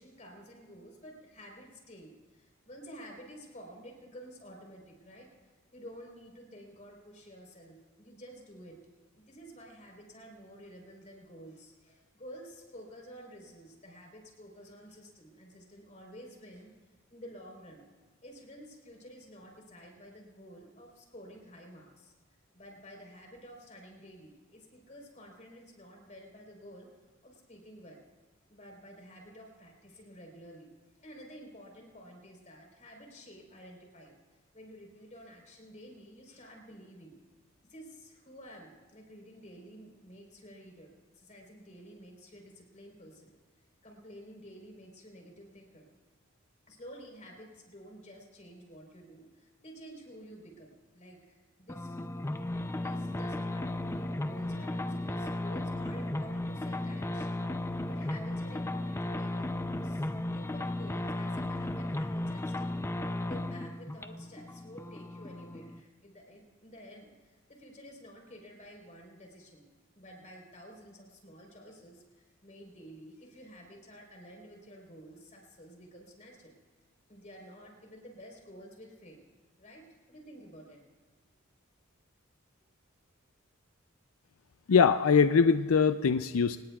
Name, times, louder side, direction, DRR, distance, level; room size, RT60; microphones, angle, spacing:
voice 1, 0.0-5.3 5.7-8.8 9.2-16.7 17.1-17.8 18.2-22.1 22.5-26.9 27.2-28.0 28.5-30.7 31.0-34.1 34.5-37.2 37.7-43.3 43.8-45.9 46.7-52.0 52.8-62.7 63.0-76.5 77.1-79.2 79.6-80.8, equal, 35° left, 1 dB, 4.0 m, -51 dB
sound 1, 51.7-65.8, left 1 dB, 15° left, 0.5 m, -35 dB
voice 2, 84.7-86.6, left 6 dB, 90° left, 10 dB, 0.5 m, -22 dB
26.5 x 18.5 x 2.4 m, 1.4 s
head